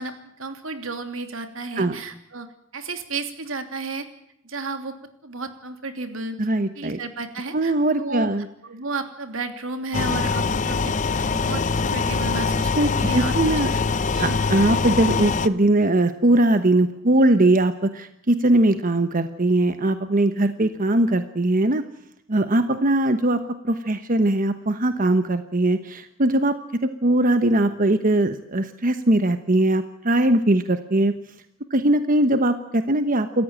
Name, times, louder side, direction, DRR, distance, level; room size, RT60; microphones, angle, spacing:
voice 1, 0.0-4.1 4.4-4.9 5.2-6.4 6.7-7.7 8.0-8.3 8.6-10.9 11.3-13.4 13.7-13.8 14.1-14.4, right 3 dB, 80° right, 7 dB, 3.0 m, -32 dB
voice 2, 6.4-7.0 7.5-8.5 12.8-13.7 14.2-21.8 22.3-23.4 23.6-26.6 26.8-31.1 31.7-33.4, right 1 dB, 40° right, 9 dB, 1.1 m, -20 dB
sound 1, 9.9-15.5, left 4 dB, 40° left, 0.8 m, -23 dB
27.5 x 14.5 x 8.9 m, 0.78 s
head